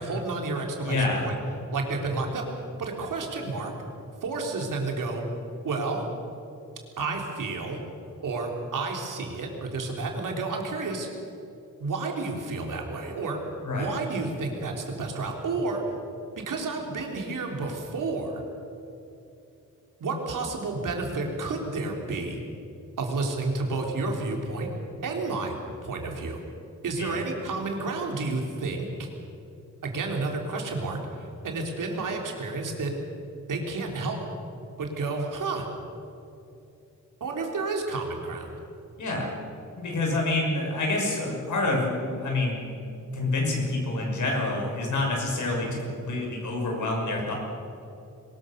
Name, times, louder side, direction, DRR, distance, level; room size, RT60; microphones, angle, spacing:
voice 1, 0.0-1.4 1.7-2.4 2.8-3.7 4.2-5.3 5.6-6.0 7.0-7.8 8.2-11.1 11.8-13.4 13.7-15.8 16.4-18.4 20.0-22.4 23.0-24.7 25.0-25.5 25.8-26.4 26.8-29.1 29.8-32.9 33.5-34.2 34.8-35.7 37.2-38.5, right 3 dB, 80° right, 1 dB, 3.7 m, -30 dB
voice 2, 0.8-1.3 13.6-13.9 27.0-27.2 39.0-39.3 39.8-42.7 43.1-47.3, left 2 dB, 70° left, 0 dB, 6.2 m, -27 dB
22.5 x 20.5 x 6.7 m, 2.7 s
wide cardioid pair, 160°, 31 cm